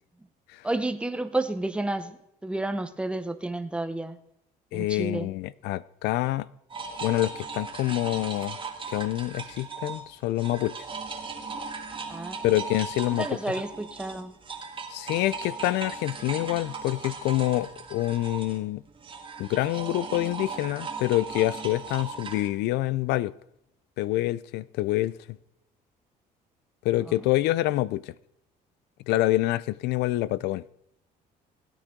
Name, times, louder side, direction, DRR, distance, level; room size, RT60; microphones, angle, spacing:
voice 1, 0.6-2.2 2.4-4.2 4.7-5.3 12.1-12.5 13.2-14.3 27.1-27.2, right 2 dB, 5° right, 0.8 m, -30 dB
voice 2, 4.7-6.5 7.0-8.6 8.9-10.8 12.4-13.3 14.9-18.8 19.4-23.3 24.0-25.2 26.8-28.1 29.1-30.6, left 16 dB, 85° left, 0.4 m, -26 dB
sound 1, 6.7-10.1 10.4-22.5, right 4 dB, 30° right, 1.5 m, -38 dB
17.0 x 9.2 x 3.7 m
cardioid pair, 110°, 17 cm